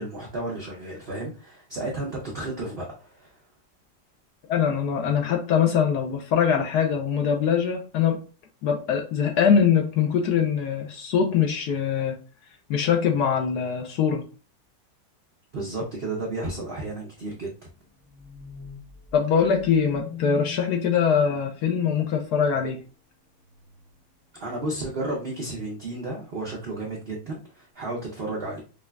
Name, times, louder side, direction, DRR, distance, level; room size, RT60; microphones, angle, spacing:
voice 1, 0.0-3.3 15.5-17.5 24.3-28.6, right 2 dB, 65° right, 0.6 m, -32 dB
voice 2, 4.5-8.2 8.6-12.2 12.7-14.2 19.1-22.8, left 7 dB, 65° left, 1.1 m, -23 dB
sound 1, 17.2-22.0 22.5-23.0 23.4-24.0 24.5-24.7 25.1-25.2, left 8 dB, 50° left, 1.2 m, -43 dB
5.2 x 2.4 x 2.2 m
omnidirectional pair, 2.1 m